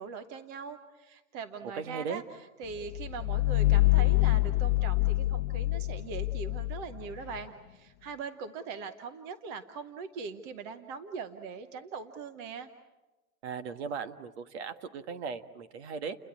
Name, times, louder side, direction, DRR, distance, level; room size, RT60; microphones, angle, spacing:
voice 1, 0.0-12.7, right 5 dB, 20° right, 10 dB, 0.9 m, -41 dB
voice 2, 1.7-2.2 13.4-16.2, right 5 dB, 50° right, 10 dB, 1.7 m, -37 dB
sound 1, 2.8-7.4, left 19 dB, 40° left, 1.0 m, -26 dB
30.0 x 21.5 x 8.8 m, 1.1 s
supercardioid pair, 165°, 44 cm